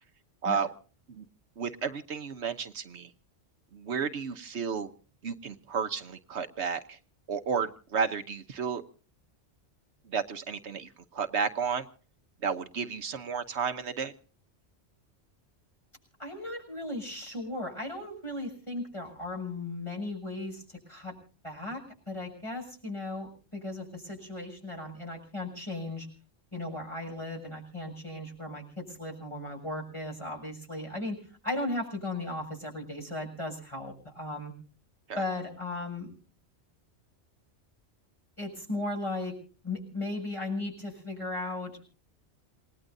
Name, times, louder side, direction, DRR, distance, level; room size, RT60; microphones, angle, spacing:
voice 1, 1.6-3.1 3.7-4.9 5.2-7.0 7.3-8.8 10.1-11.8 12.4-14.1 35.1-35.2, right 6 dB, 75° right, 9 dB, 1.2 m, -32 dB
voice 2, 16.2-21.2 21.4-26.1 26.5-34.5 35.2-36.1 38.4-39.4 39.6-41.9, left 2 dB, 25° left, 1 dB, 7.3 m, -36 dB
28.0 x 19.0 x 2.7 m, 0.39 s
omnidirectional pair, 1.2 m